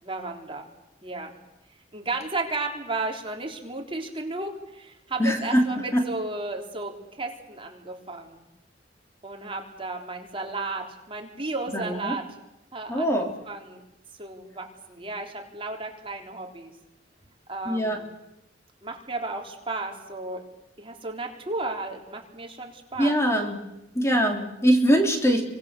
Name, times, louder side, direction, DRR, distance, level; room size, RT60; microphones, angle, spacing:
voice 1, 0.0-0.7 1.0-1.4 1.9-8.4 9.2-12.4 12.7-13.8 14.2-16.7 17.5-18.2 18.8-20.5 20.8-23.2 24.1-24.5, right 3 dB, 30° right, 2 dB, 3.6 m, -34 dB
voice 2, 5.2-5.6 5.9-6.0 11.7-12.2 12.9-13.4 17.7-18.0 23.0-23.6 23.9-25.4, equal, 15° left, 3 dB, 3.1 m, -22 dB
29.5 x 25.0 x 6.7 m, 0.88 s
head